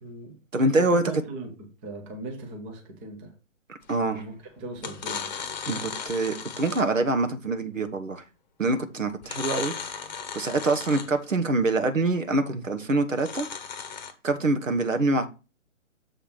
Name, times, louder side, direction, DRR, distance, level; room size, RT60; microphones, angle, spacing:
voice 1, 0.0-0.4 0.8-1.5 1.8-3.3 4.1-5.3, right 2 dB, 10° right, 0.5 m, -38 dB
voice 2, 0.5-1.0 3.7-4.2 5.7-8.2 8.6-9.7 10.3-13.5 14.2-15.3, right 2 dB, 85° right, 1.2 m, -25 dB
sound 1, 3.9-4.2 4.8-7.0 9.2-11.3 13.1-14.1, left 7 dB, 35° left, 0.9 m, -36 dB
7.1 x 3.4 x 5.9 m
figure-of-eight pair, 135°, 38 cm